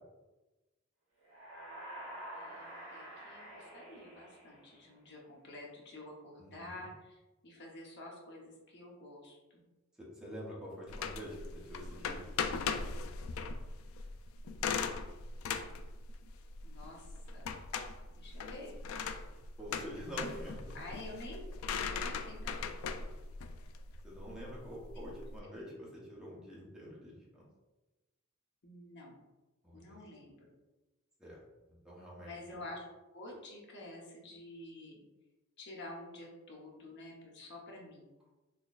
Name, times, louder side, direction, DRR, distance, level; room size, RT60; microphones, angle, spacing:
sound 1, 1.2-5.1, right 1 dB, 65° right, 1.2 m, -48 dB
voice 1, 2.3-9.6 14.5-14.8 16.6-17.1 17.3-17.5 18.2-18.8 20.7-21.4 21.7-22.5 22.8-22.9 24.9-25.2 28.6-29.2 29.7-30.5 32.2-35.0 35.6-38.1, left 2 dB, 55° left, -1 dB, 0.9 m, -49 dB
voice 2, 6.4-6.9 10.0-12.3 19.6-20.7 24.0-27.4 29.6-30.0 31.2-31.4 31.7-32.4, equal, 5° right, -6 dB, 0.9 m, -46 dB
sound 2, 10.9-25.4, left 5 dB, 75° left, 0.3 m, -39 dB
4.1 x 3.0 x 2.4 m, 1.1 s
head